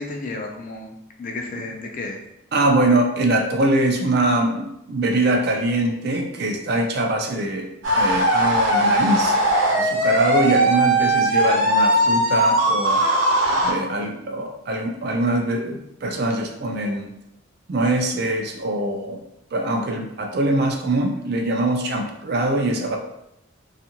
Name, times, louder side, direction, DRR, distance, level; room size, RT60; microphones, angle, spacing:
voice 1, 0.0-2.2, left 2 dB, 40° left, 1 dB, 0.4 m, -32 dB
voice 2, 2.5-9.3 9.7-13.0 13.6-17.1 17.7-19.2 19.5-23.0, right 1 dB, 50° right, 3 dB, 0.4 m, -23 dB
sound 1, 7.8-13.7, right 1 dB, 80° right, 0.8 m, -19 dB
2.6 x 2.4 x 2.8 m, 0.83 s
head